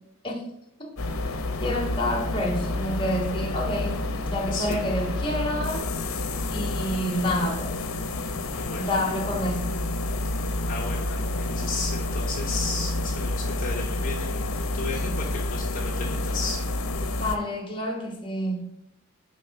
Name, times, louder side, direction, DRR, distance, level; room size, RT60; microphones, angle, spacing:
sound 1, 1.0-17.4, left 2 dB, 75° left, 0.7 m, -29 dB
voice 1, 1.6-4.0 4.3-5.9 6.5-7.8 8.7-9.8 17.1-18.6, left 1 dB, 25° left, 0 dB, 1.2 m, -28 dB
voice 2, 4.5-4.8 8.5-8.9 10.7-16.6, left 3 dB, 40° left, -3 dB, 0.8 m, -34 dB
5.3 x 3.7 x 5.7 m, 0.78 s
head